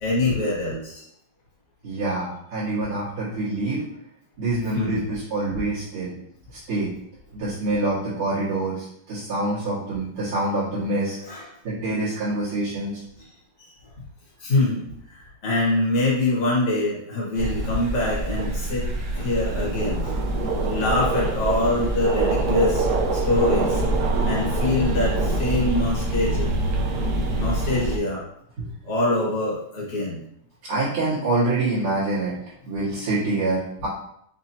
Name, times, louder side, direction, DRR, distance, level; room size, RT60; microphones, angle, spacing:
voice 1, 0.0-1.0 4.7-5.0 11.2-11.5 14.4-14.8 15.1-18.8 19.1-20.1 20.7-22.9 23.1-23.8 24.2-26.7 27.4-28.2 28.8-30.2, left 2 dB, 90° left, -6 dB, 2.6 m, -24 dB
voice 2, 1.8-3.8 4.4-6.1 6.7-6.9 7.3-11.2 11.6-13.0 28.6-28.7 30.6-32.3 32.7-33.9, right 2 dB, 85° right, -13 dB, 2.7 m, -26 dB
sound 1, 17.3-28.0, right 2 dB, 65° right, 1.1 m, -24 dB
6.1 x 2.7 x 2.7 m, 0.72 s
omnidirectional pair, 2.4 m